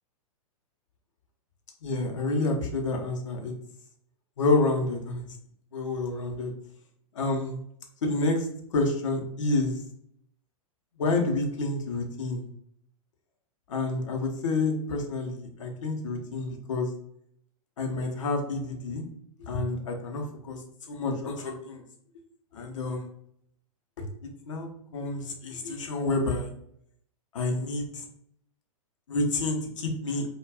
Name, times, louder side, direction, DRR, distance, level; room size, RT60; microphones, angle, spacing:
voice 1, 1.8-3.5 4.4-5.2 5.7-6.5 7.1-7.6 8.0-9.8 11.0-12.5 13.7-16.9 17.8-19.0 19.4-20.6 20.9-21.8 22.5-23.1 24.0-26.5 27.3-27.9 29.1-30.3, left 2 dB, 55° left, 2 dB, 0.7 m, -29 dB
2.3 x 2.3 x 3.3 m, 0.69 s
figure-of-eight pair, 105°, 19 cm